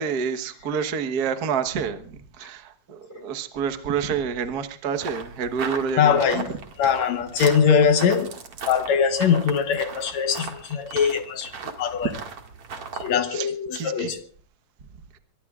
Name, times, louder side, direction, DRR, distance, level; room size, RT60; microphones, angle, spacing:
voice 1, 0.0-6.4 13.3-13.5 13.7-14.1, right 6 dB, 80° right, 0.8 m, -28 dB
sound 1, 5.0-13.1, right 5 dB, 55° right, 2.8 m, -37 dB
voice 2, 6.0-6.5 6.8-8.4 8.7-12.1 12.9-14.2, left 7 dB, 65° left, 2.1 m, -22 dB
24.0 x 22.5 x 2.4 m
omnidirectional pair, 3.7 m